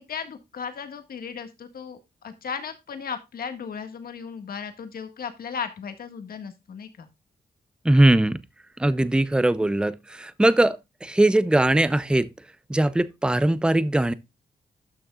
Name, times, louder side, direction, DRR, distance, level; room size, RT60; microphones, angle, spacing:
voice 1, 0.0-7.1, left 6 dB, 65° left, 1.7 m, -36 dB
voice 2, 7.8-8.4 8.8-12.3 12.7-14.1, right 1 dB, 5° right, 0.5 m, -20 dB
12.0 x 6.3 x 2.3 m
cardioid pair, 110°, 17 cm